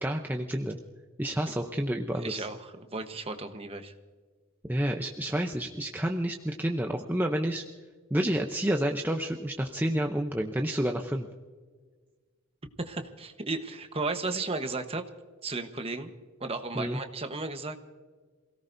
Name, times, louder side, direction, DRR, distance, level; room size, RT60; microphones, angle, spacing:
voice 1, 0.0-0.8 1.2-2.5 4.7-7.6 8.1-11.3 16.8-17.0, right 1 dB, 10° right, 3 dB, 0.7 m, -29 dB
voice 2, 2.2-3.9 12.8-15.0 15.4-16.1 16.4-17.8, right 3 dB, 25° right, 7 dB, 1.1 m, -34 dB
28.0 x 17.5 x 2.7 m, 1.5 s
head